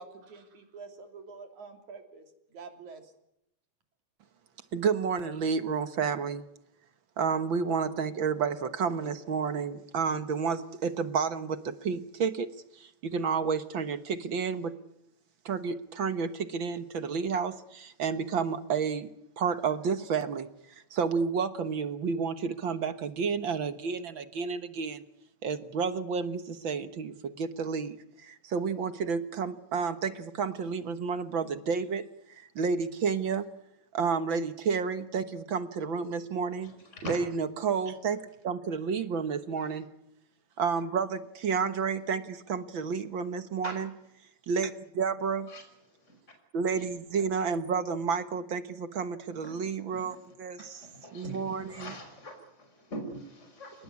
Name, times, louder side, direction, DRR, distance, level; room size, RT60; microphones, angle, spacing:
voice 1, 0.0-2.3 2.5-3.1, right 4 dB, 80° right, 6 dB, 4.6 m, -47 dB
voice 2, 4.7-6.4 7.2-12.5 12.8-14.7 15.5-19.1 19.4-25.0 25.4-32.0 32.3-33.5 33.9-36.8 37.0-39.9 40.6-43.9 44.5-45.5 46.5-50.9 51.1-52.0, right 5 dB, 50° right, 11 dB, 1.7 m, -31 dB
voice 3, 36.6-37.2 39.6-39.8 43.6-43.8 45.5-45.6 46.1-46.2 46.8-46.9 49.4-49.7 50.6-53.8, equal, 20° left, 5 dB, 5.5 m, -43 dB
28.5 x 19.5 x 9.7 m, 0.80 s
omnidirectional pair, 3.4 m